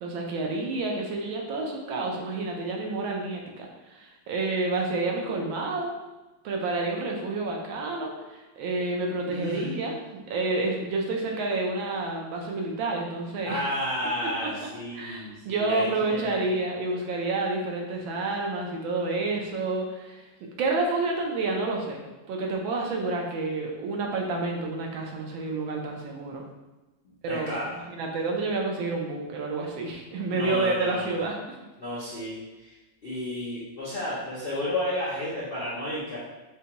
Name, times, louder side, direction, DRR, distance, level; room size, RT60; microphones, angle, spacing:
voice 1, 0.0-3.7 3.9-5.9 6.4-13.6 14.9-20.2 20.6-22.0 22.3-26.4 27.2-27.6 27.9-31.4, right 3 dB, 80° right, 0 dB, 1.5 m, -29 dB
voice 2, 9.3-9.8 13.4-16.3 27.3-27.8 30.3-31.1 31.8-32.7 33.0-36.2, left 1 dB, 60° left, -8 dB, 0.5 m, -32 dB
6.5 x 2.2 x 2.9 m, 1.1 s
omnidirectional pair, 2.1 m